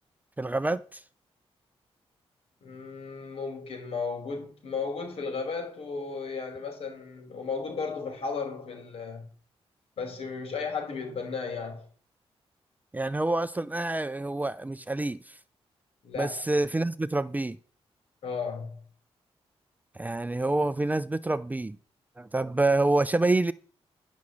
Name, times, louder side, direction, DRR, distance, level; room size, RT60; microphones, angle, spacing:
voice 1, 0.4-1.0 12.9-15.4 16.2-17.6 20.0-21.8 22.2-23.5, right 2 dB, 15° right, 0.5 m, -27 dB
voice 2, 2.6-9.3 10.0-11.9 16.0-16.4 18.2-18.8, left 5 dB, 65° left, 5.2 m, -34 dB
11.5 x 6.3 x 8.5 m
cardioid pair, 105°, 11 cm